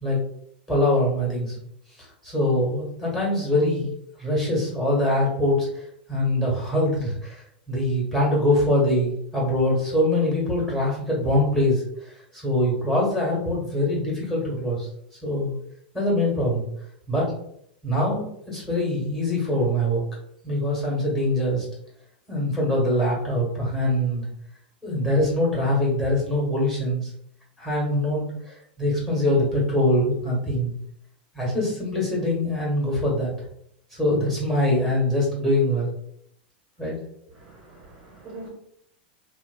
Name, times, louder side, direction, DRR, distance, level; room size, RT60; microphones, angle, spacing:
voice 1, 0.7-1.5 2.2-3.9 4.2-5.8 6.1-7.4 7.7-14.9 15.2-15.5 15.9-16.7 17.1-17.3 17.8-20.0 20.4-21.6 22.3-24.3 24.8-27.1 27.6-30.7 31.3-33.3 33.9-35.9 36.8-37.0, left 1 dB, 5° left, -6 dB, 1.4 m, -23 dB
voice 2, 37.3-38.5, right 2 dB, 30° right, -4 dB, 0.9 m, -43 dB
2.8 x 2.3 x 2.2 m, 0.71 s
hypercardioid pair, 105°, 5 cm